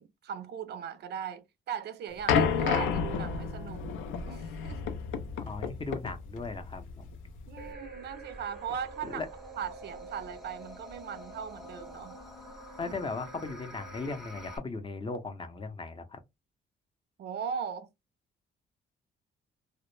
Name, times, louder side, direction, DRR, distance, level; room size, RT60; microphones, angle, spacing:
voice 1, 0.0-3.9 4.3-4.8 7.5-9.3 9.6-12.2 12.8-12.9 17.2-17.9, right 7 dB, 60° right, 0.4 m, -38 dB
sound 1, 2.3-7.7, left 6 dB, 75° left, 0.5 m, -31 dB
voice 2, 5.4-7.1 9.0-9.3 12.8-16.2, left 3 dB, 25° left, 0.5 m, -37 dB
sound 2, 7.6-14.6, right 1 dB, ahead, 0.8 m, -46 dB
2.0 x 2.0 x 3.0 m
cardioid pair, 90°, 20 cm